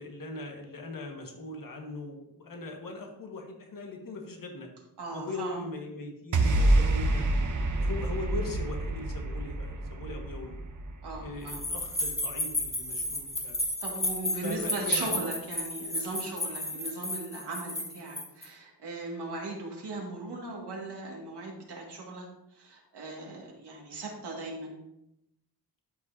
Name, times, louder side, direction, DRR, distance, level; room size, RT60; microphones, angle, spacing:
voice 1, 0.0-4.7 5.1-7.3 7.8-10.6 11.2-13.6 14.4-15.2, left 2 dB, 55° left, 2 dB, 1.7 m, -40 dB
voice 2, 5.0-5.6 11.0-11.6 13.8-22.3 22.5-24.7, right 2 dB, 80° right, -1 dB, 2.2 m, -38 dB
sound 1, 6.3-12.8, right 2 dB, 50° right, 0.9 m, -28 dB
sound 2, 11.5-18.4, left 1 dB, 15° left, 1.9 m, -32 dB
12.5 x 5.6 x 2.8 m, 0.86 s
wide cardioid pair, 90°, 40 cm